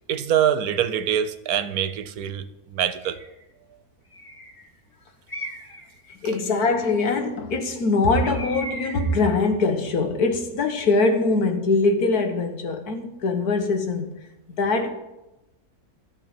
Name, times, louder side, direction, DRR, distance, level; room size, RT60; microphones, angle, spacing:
voice 1, 0.1-3.2, right 9 dB, 75° right, 1.2 m, -24 dB
Bird, 3.0-3.3 4.1-4.7 5.3-5.9 8.2-9.2, equal, 20° left, 1.7 m, -37 dB
voice 2, 6.1-14.1 14.6-14.9, left 3 dB, 75° left, 1.9 m, -22 dB
13.5 x 5.6 x 8.9 m
omnidirectional pair, 1.6 m